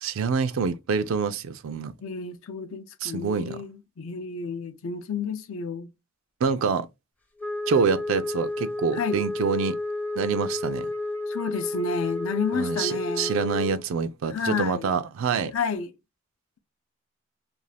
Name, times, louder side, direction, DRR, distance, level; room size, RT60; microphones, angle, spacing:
voice 1, 0.0-1.9 3.0-3.6 6.4-6.9 7.7-9.8 10.2-10.9 12.5-15.5, right 5 dB, 70° right, 0.3 m, -26 dB
voice 2, 2.0-5.9 8.9-9.2 11.3-13.3 14.3-14.9 15.5-15.9, left 5 dB, 70° left, 0.5 m, -30 dB
Wind instrument woodwind instrument, 7.4-13.8, left 2 dB, 5° left, 0.5 m, -31 dB
2.6 x 2.4 x 3.2 m
head